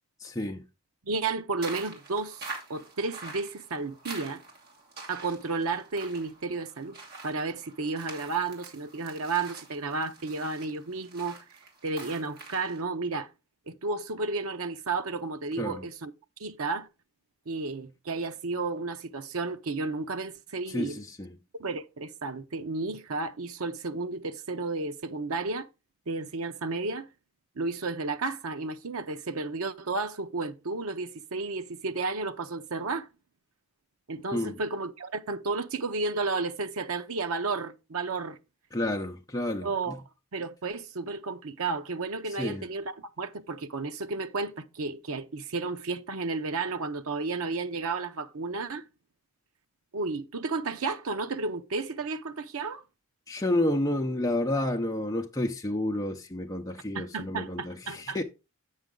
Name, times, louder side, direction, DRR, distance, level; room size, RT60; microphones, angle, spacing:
voice 1, 0.2-0.6 15.6-15.8 20.7-21.4 34.3-34.6 38.7-39.7 42.4-42.6 53.3-58.2, left 1 dB, 15° left, 0.7 m, -30 dB
voice 2, 1.0-4.4 5.1-7.0 7.2-11.4 11.8-13.3 13.7-16.1 16.4-16.9 17.5-21.0 21.6-25.7 26.1-27.1 27.6-33.1 34.1-38.4 39.6-40.0 40.3-48.8 49.9-52.8 56.9-58.2, right 3 dB, 75° right, 0.7 m, -32 dB
sound 1, 1.6-12.8, right 3 dB, 45° right, 2.6 m, -45 dB
8.2 x 6.4 x 3.8 m
head